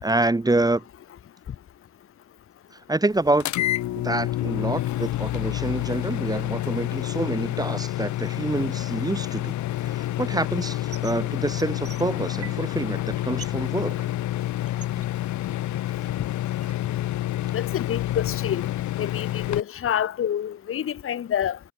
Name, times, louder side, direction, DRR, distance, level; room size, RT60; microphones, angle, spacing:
voice 1, 0.0-0.8 2.9-3.5 3.9-9.6 9.8-14.1 17.4-17.5, right 2 dB, 15° right, 1.6 m, -27 dB
sound 1, 3.4-19.6, left 14 dB, 75° left, 0.7 m, -28 dB
sound 2, 10.6-11.2 11.5-12.8 13.1-13.7 14.0-15.8 16.1-16.9, right 8 dB, 55° right, 4.4 m, -45 dB
voice 2, 17.5-18.7 19.0-21.6, left 10 dB, 50° left, 1.0 m, -27 dB
cardioid pair, 115°, 29 cm